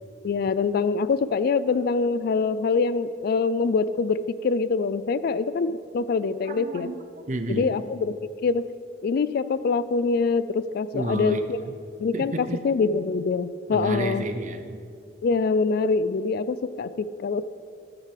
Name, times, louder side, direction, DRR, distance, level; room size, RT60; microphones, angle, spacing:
voice 1, 0.2-6.9 7.5-8.7 9.0-11.4 12.0-12.3 12.6-14.2 15.2-17.4, left 4 dB, 60° left, 15 dB, 0.3 m, -24 dB
voice 2, 6.4-7.8 10.9-11.8 12.1-12.6 13.7-14.8, right 2 dB, 45° right, 7 dB, 0.7 m, -31 dB
12.5 x 9.2 x 3.3 m, 2.4 s
head